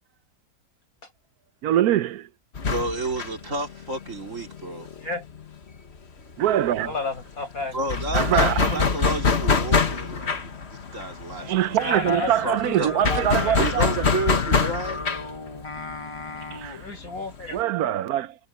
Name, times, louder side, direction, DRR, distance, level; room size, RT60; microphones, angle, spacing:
voice 1, 1.6-2.3 6.4-6.9 8.1-8.8 11.4-14.1 16.5-16.8 17.5-18.4, right 12 dB, 85° right, 1.2 m, -23 dB
sound 1, 2.6-6.0 6.2-6.4 6.6-17.6, left 5 dB, 45° left, 1.7 m, -26 dB
voice 2, 2.6-4.9 7.7-11.8 12.4-12.9 13.6-15.0, right 2 dB, 55° right, 3.4 m, -31 dB
voice 3, 6.8-7.9 11.8-13.6 16.8-17.7, left 3 dB, 75° left, 7.4 m, -32 dB
Singing, 11.8-16.9, left 3 dB, 25° left, 0.8 m, -36 dB
omnidirectional pair, 1.5 m